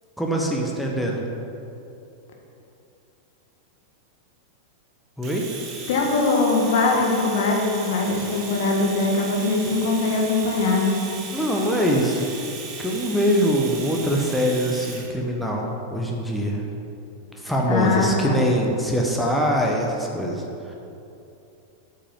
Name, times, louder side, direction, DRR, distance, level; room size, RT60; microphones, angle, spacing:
voice 1, 0.2-1.2 5.2-5.5 11.3-12.3 12.8-16.6 17.3-20.4 20.7-20.8, equal, ahead, -2 dB, 1.1 m, -23 dB
Domestic sounds home sounds, 5.2-15.1, right 4 dB, 30° right, 1.5 m, -37 dB
voice 2, 5.9-11.0 17.7-18.4, left 3 dB, 55° left, 0 dB, 1.6 m, -21 dB
8.4 x 5.5 x 7.5 m, 2.8 s
figure-of-eight pair, 90°, 0 cm